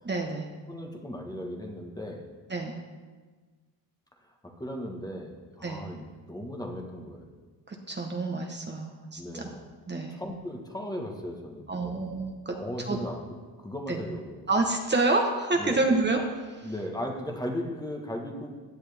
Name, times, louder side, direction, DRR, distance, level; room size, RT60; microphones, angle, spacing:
voice 1, 0.0-0.5 2.5-2.8 5.6-5.8 7.7-9.5 9.9-10.2 11.7-12.5 12.9-13.0 13.9-14.0 14.5-16.2 16.5-16.7, right 2 dB, 25° right, 2 dB, 1.2 m, -28 dB
voice 2, 0.7-2.2 4.2-7.3 9.2-9.6 10.1-12.0 12.6-13.2 13.6-14.4 15.6-15.8 16.6-18.6, equal, 10° left, 1 dB, 1.4 m, -37 dB
16.5 x 10.5 x 3.5 m, 1.4 s
cardioid pair, 130°, 44 cm